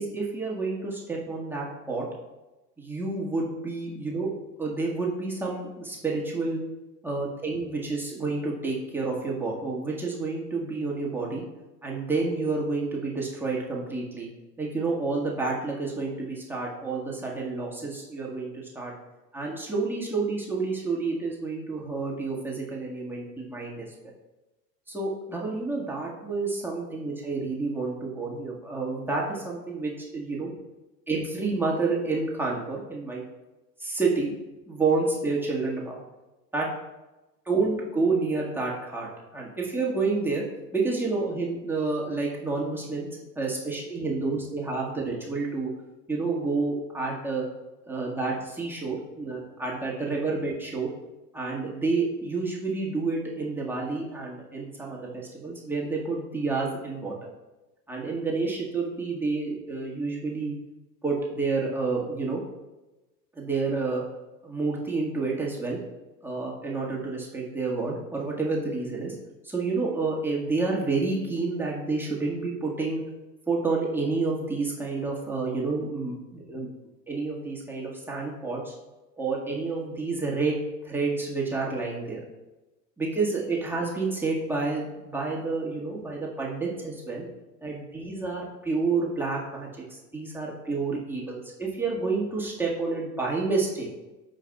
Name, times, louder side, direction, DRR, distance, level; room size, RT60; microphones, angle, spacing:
voice 1, 0.0-2.1 2.8-4.3 4.6-6.6 7.0-11.4 11.8-14.3 14.6-18.9 19.3-24.1 24.9-30.5 31.1-33.2 33.8-34.3 34.7-36.0 36.5-36.7 37.5-40.4 40.7-43.1 43.4-45.7 46.1-47.5 47.9-50.9 51.3-57.1 57.9-60.6 61.0-62.4 63.4-64.0 64.4-65.8 66.2-69.2 69.4-73.0 73.5-76.7 77.1-78.7 79.2-82.2 83.0-87.3 87.6-93.9, right 3 dB, 5° right, -4 dB, 1.9 m, -29 dB
14.5 x 5.0 x 2.4 m, 1.1 s
figure-of-eight pair, 85°, 50 cm